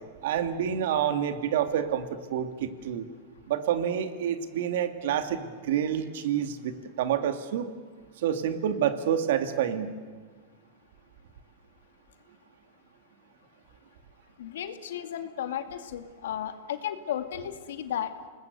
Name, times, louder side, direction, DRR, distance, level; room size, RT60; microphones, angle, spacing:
voice 1, 0.2-2.0 2.3-3.1 3.5-7.7 8.2-9.9, right 9 dB, 70° right, 9 dB, 2.2 m, -28 dB
voice 2, 14.4-18.1, left 10 dB, 85° left, 8 dB, 2.1 m, -34 dB
29.0 x 20.0 x 8.1 m, 1.5 s
supercardioid pair, 150°, 0 cm